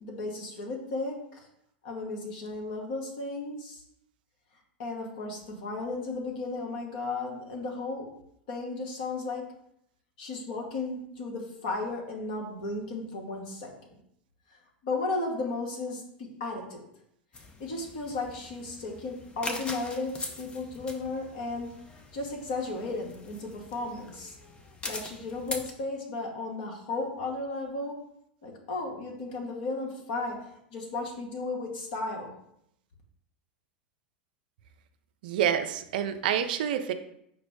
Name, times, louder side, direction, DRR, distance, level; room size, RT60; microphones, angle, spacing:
voice 1, 0.0-1.5 1.8-3.8 4.8-8.1 8.5-9.4 10.2-13.7 14.8-16.9 17.6-21.7 22.1-24.4 24.8-28.0 28.4-32.3, left 3 dB, 60° left, 0 dB, 1.1 m, -34 dB
sound 1, 17.3-25.7, left 2 dB, 20° left, 0.6 m, -42 dB
voice 2, 35.2-36.9, right 9 dB, 65° right, 8 dB, 0.4 m, -27 dB
5.1 x 2.0 x 4.5 m, 0.74 s
figure-of-eight pair, 90°, 5 cm